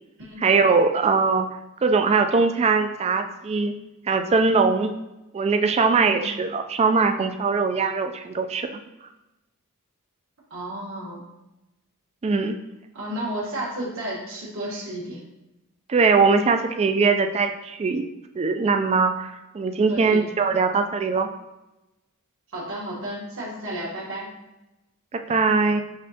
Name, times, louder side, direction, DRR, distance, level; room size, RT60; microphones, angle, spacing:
voice 1, 0.4-1.5 1.8-3.7 4.1-4.9 5.3-8.8 12.2-12.6 15.9-18.0 18.4-21.3 25.1-25.8, right 4 dB, 30° right, 6 dB, 0.3 m, -21 dB
voice 2, 10.5-11.2 12.9-15.2 19.9-20.3 22.5-24.3, right 1 dB, 60° right, -6 dB, 1.1 m, -32 dB
5.0 x 3.1 x 2.7 m, 0.96 s
head